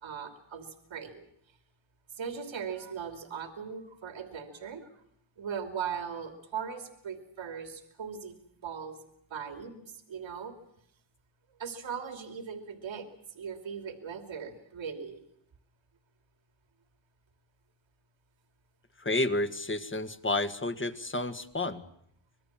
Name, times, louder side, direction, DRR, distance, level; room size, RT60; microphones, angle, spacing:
voice 1, 0.0-1.3 2.2-4.9 5.4-8.3 8.6-10.6 11.6-15.2, right 7 dB, 75° right, 8 dB, 3.0 m, -39 dB
voice 2, 19.0-21.8, left 2 dB, 25° left, 10 dB, 1.8 m, -30 dB
26.0 x 20.5 x 7.5 m, 0.72 s
cardioid pair, 90°, 46 cm